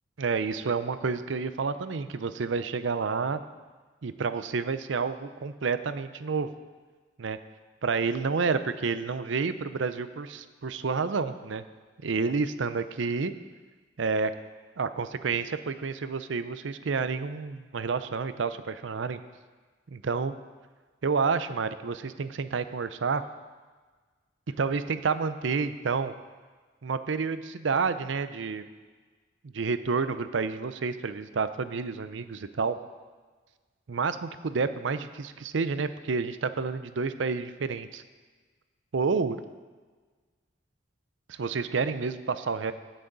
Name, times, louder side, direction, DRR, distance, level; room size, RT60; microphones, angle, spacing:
voice 1, 0.2-3.4 4.0-6.5 7.2-7.4 7.8-11.6 12.0-13.3 14.0-14.3 14.8-19.2 19.9-20.3 21.0-23.2 24.6-26.1 26.8-28.6 29.5-32.8 33.9-38.0 38.9-39.4 41.3-42.7, right 4 dB, 80° right, 12 dB, 0.5 m, -29 dB
18.5 x 6.3 x 4.0 m, 1.4 s
head